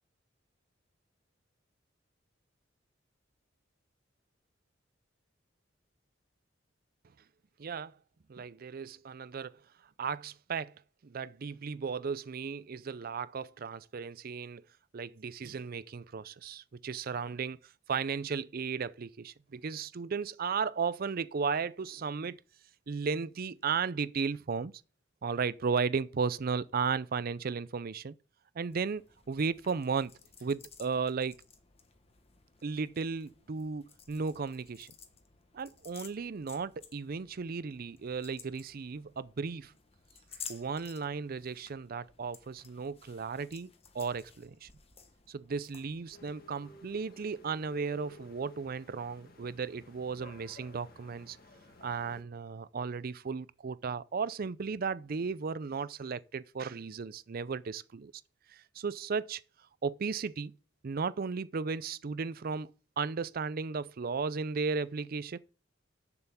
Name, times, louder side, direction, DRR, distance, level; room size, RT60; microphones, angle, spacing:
voice 1, 7.6-7.9 8.3-9.6 10.0-10.7 11.0-14.6 14.9-17.6 17.9-22.4 22.9-24.7 25.2-28.1 28.6-30.1 30.4-31.3 32.6-34.9 35.5-39.7 40.5-44.7 45.3-51.4 51.8-58.1 58.5-59.4 59.8-60.5 60.8-65.4, right 5 dB, 50° right, 0.5 m, -35 dB
sound 1, 28.7-46.3, left 6 dB, 30° left, 1.1 m, -54 dB
sound 2, 46.1-52.2, left 2 dB, 50° left, 1.5 m, -55 dB
6.9 x 6.8 x 6.9 m
head